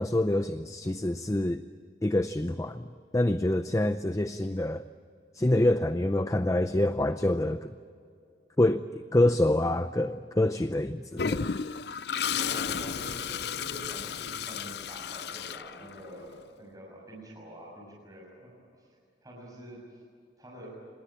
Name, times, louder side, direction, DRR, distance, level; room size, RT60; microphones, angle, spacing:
voice 1, 0.0-1.6 2.0-2.9 3.1-4.8 5.3-7.7 8.6-11.5, left 1 dB, 15° left, 10 dB, 0.5 m, -26 dB
Toilet flush, 11.2-16.2, left 7 dB, 60° left, 0.6 m, -33 dB
voice 2, 12.3-18.9 19.2-20.0 20.4-20.7, equal, 20° right, -4 dB, 6.7 m, -46 dB
27.5 x 20.0 x 8.9 m, 2.3 s
head